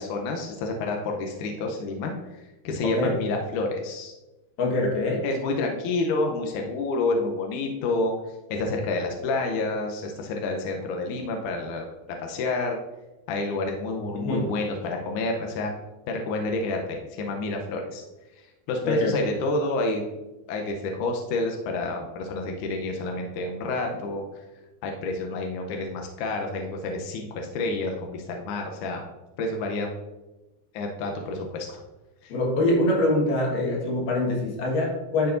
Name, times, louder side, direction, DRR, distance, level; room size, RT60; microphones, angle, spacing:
voice 1, 0.0-2.1 2.6-4.1 5.2-8.1 8.5-11.9 12.2-12.8 13.3-15.7 16.1-18.0 18.7-20.1 20.5-24.2 24.8-29.0 29.4-29.9 30.7-31.8 32.2-32.3, left 2 dB, 80° left, 2 dB, 1.8 m, -29 dB
voice 2, 4.6-5.2 14.1-14.5 18.8-19.1 32.3-35.3, left 1 dB, 65° left, -2 dB, 2.9 m, -24 dB
12.0 x 4.6 x 2.6 m, 1.1 s
omnidirectional pair, 4.6 m